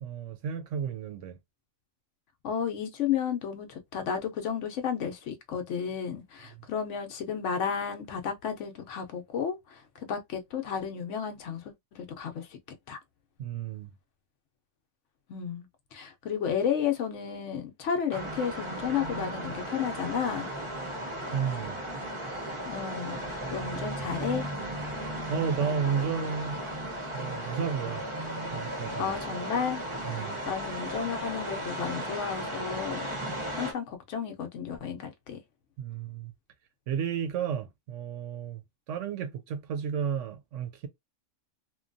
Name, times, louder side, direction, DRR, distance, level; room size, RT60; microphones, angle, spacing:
voice 1, 0.0-1.4 6.6-6.7 13.4-13.9 21.3-21.8 25.3-26.6 27.1-28.0 28.5-29.1 30.0-30.4 35.8-36.3 36.9-38.6 38.9-40.9, right 7 dB, 70° right, 0.9 m, -32 dB
voice 2, 2.4-12.6 12.9-13.0 15.3-20.5 22.6-24.5 29.0-33.2 33.6-35.4, left 7 dB, 70° left, 0.9 m, -33 dB
sound 1, 18.1-33.7, right 1 dB, 30° right, 0.6 m, -35 dB
3.0 x 2.2 x 2.5 m
omnidirectional pair, 1.3 m